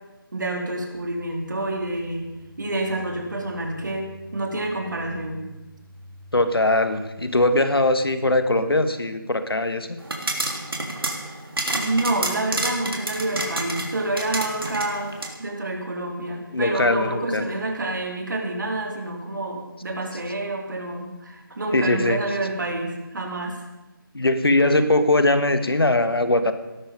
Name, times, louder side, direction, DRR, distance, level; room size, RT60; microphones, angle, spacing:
voice 1, 0.3-2.3 2.6-5.4 11.7-23.6, right 2 dB, 55° right, 1 dB, 3.7 m, -28 dB
sound 1, 0.9-8.7, right 1 dB, ahead, 1.5 m, -48 dB
voice 2, 6.3-10.0 16.5-17.4 21.7-22.2 24.1-26.5, left 2 dB, 85° left, 9 dB, 1.8 m, -21 dB
sound 2, 10.0-15.3, right 2 dB, 75° right, 3.4 m, -29 dB
18.0 x 12.5 x 5.3 m, 1.0 s
figure-of-eight pair, 170°, 12 cm